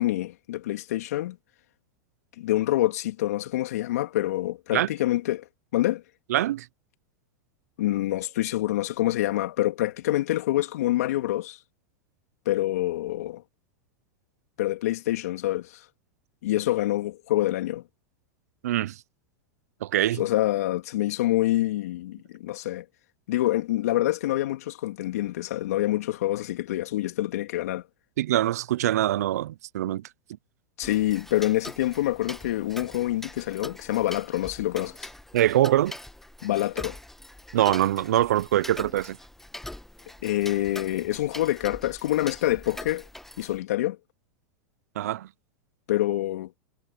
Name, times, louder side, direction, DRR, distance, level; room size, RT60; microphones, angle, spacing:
voice 1, 0.0-1.4 2.4-5.4 5.7-6.0 7.8-11.6 12.4-13.4 14.6-15.8 16.4-17.8 20.2-22.8 23.3-27.8 30.8-35.1 36.4-37.0 40.2-43.1 43.4-44.0 45.9-46.5, left 15 dB, 75° left, 3.1 m, -26 dB
voice 2, 6.3-6.7 18.6-19.0 19.8-20.2 28.2-30.1 35.3-35.9 37.5-39.2 45.0-45.3, right 13 dB, 75° right, 0.6 m, -23 dB
Tick-tock, 30.8-43.6, left 1 dB, 5° left, 1.4 m, -43 dB
hypercardioid pair, 110°, 8 cm